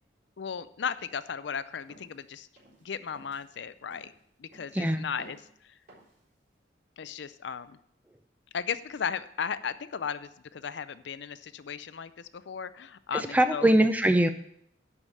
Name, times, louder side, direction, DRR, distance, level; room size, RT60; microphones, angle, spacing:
voice 1, 0.4-2.5 2.8-4.1 4.4-5.4 7.0-7.8 8.5-13.7, left 7 dB, 70° left, 14 dB, 0.5 m, -35 dB
sound 1, 1.9-2.2 2.6-2.9 3.1-3.5 3.9-4.2 4.5-4.9 5.2-5.5 5.9-6.2, right 2 dB, 45° right, 3.8 m, -54 dB
voice 2, 4.7-5.1 13.1-14.3, right 1 dB, 10° right, 9 dB, 0.5 m, -22 dB
10.5 x 4.9 x 7.1 m, 0.69 s
head